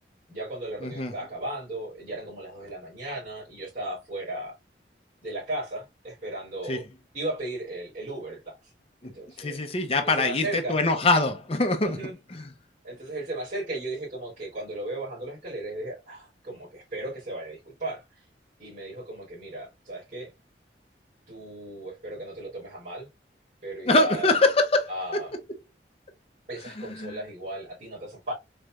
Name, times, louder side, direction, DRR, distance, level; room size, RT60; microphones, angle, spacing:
voice 1, 0.3-4.5 5.2-6.8 7.1-8.5 9.0-9.6 10.0-10.8 11.8-12.1 12.8-18.0 18.6-20.3 21.3-23.1 23.6-24.4 24.9-25.3 26.5-28.3, right 1 dB, 45° right, 2.7 m, -36 dB
voice 2, 0.8-1.1 6.7-6.8 9.0-9.1 9.4-12.0 12.3-12.4 23.9-24.9 26.6-27.2, left 2 dB, 35° left, 0.7 m, -24 dB
4.2 x 3.3 x 2.3 m
head